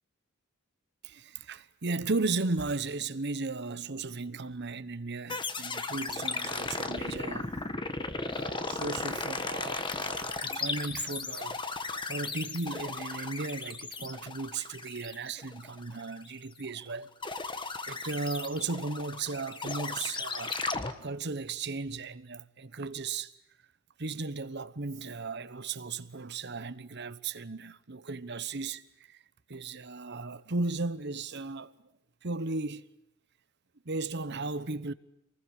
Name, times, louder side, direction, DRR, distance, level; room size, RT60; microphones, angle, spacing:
voice 1, 1.0-7.5 8.3-11.6 11.8-17.1 17.9-20.6 21.0-23.3 24.0-29.2 29.5-31.7 32.2-32.9 33.8-34.9, right 3 dB, 55° right, 1.1 m, -36 dB
sound 1, 5.3-16.8 17.2-20.9, left 3 dB, 25° left, 1.4 m, -36 dB
27.5 x 20.5 x 10.0 m
head